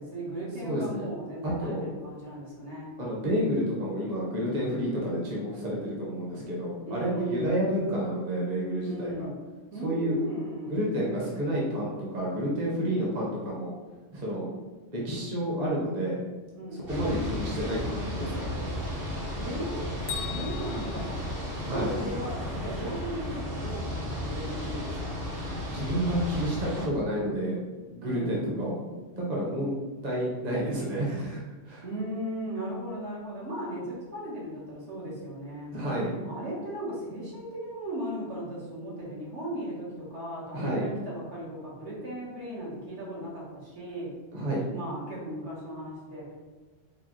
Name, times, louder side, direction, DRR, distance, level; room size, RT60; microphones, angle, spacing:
voice 1, 0.0-2.9 6.8-7.6 8.8-9.4 9.7-10.9 16.5-17.2 19.4-21.3 21.7-25.1 28.0-28.5 31.8-35.7 36.2-44.1 44.7-46.3, right 1 dB, 70° right, -6 dB, 1.5 m, -37 dB
voice 2, 0.6-1.0 1.4-1.9 3.0-9.3 9.8-10.2 10.7-13.7 14.1-14.5 14.9-16.2 16.7-18.6 21.6-21.9 25.7-27.6 27.9-28.8 29.2-31.4 31.7-31.8 35.7-36.2 40.5-40.9 44.3-44.6, equal, 40° right, -5 dB, 0.9 m, -30 dB
sound 1, 16.9-26.8, equal, 55° right, 1.2 m, -34 dB
Bell, 20.1-22.1, left 9 dB, 85° left, 1.0 m, -40 dB
4.8 x 2.2 x 3.1 m, 1.3 s
omnidirectional pair, 1.2 m